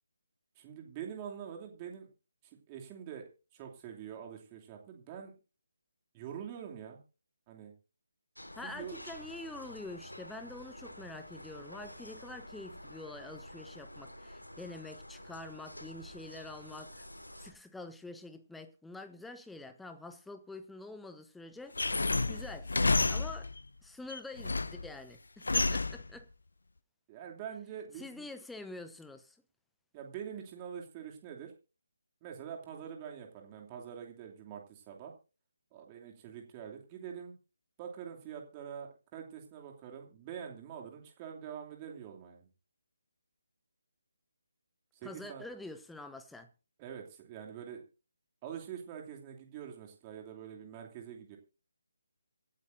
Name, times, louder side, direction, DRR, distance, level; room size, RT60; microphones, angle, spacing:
voice 1, 0.6-2.1 2.7-5.3 6.1-7.0 7.5-7.7 8.6-9.0 27.1-28.3 29.9-31.5 32.2-35.1 35.7-37.3 37.8-42.5 44.9-45.4 46.8-47.8 48.4-51.4, right 8 dB, 20° right, 2.7 m, -45 dB
sound 1, 8.3-17.5, left 1 dB, 85° left, 3.3 m, -49 dB
voice 2, 8.5-17.0 17.4-21.8 22.3-22.7 23.1-23.5 23.8-26.3 28.0-29.4 45.0-46.5, left 2 dB, 5° left, 0.9 m, -46 dB
sound 2, 21.8-23.6 24.1-24.9 25.4-26.1, left 3 dB, 65° left, 0.7 m, -30 dB
25.0 x 8.7 x 2.7 m
figure-of-eight pair, 150°, 0 cm